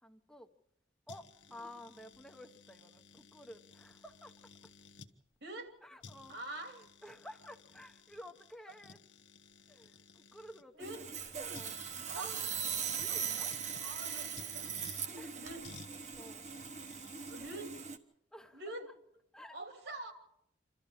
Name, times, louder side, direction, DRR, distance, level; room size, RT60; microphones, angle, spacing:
voice 1, 0.0-0.5 1.1-4.3 5.8-9.0 9.7-11.1 11.5-12.3 12.9-13.5 15.2-15.4 16.2-16.4 17.4-17.7 18.3-18.7 19.3-19.6 19.8-20.1, left 1 dB, 5° left, 5 dB, 0.8 m, -53 dB
sound 1, 1.1-5.1 5.7-5.8 6.0-10.6 11.5-13.9 14.4-15.1 15.6-17.3, left 4 dB, 80° left, 1.2 m, -57 dB
voice 2, 5.4-5.7 6.3-6.8 10.7-11.0 12.1-12.4 13.1-13.2 13.7-14.7 15.4-15.6 17.3-17.7 18.5-18.9 19.5-20.1, right 2 dB, 65° right, 4 dB, 2.9 m, -45 dB
Sawing, 10.8-18.0, right 7 dB, 40° right, 1.1 m, -40 dB
27.5 x 13.0 x 7.3 m, 0.78 s
head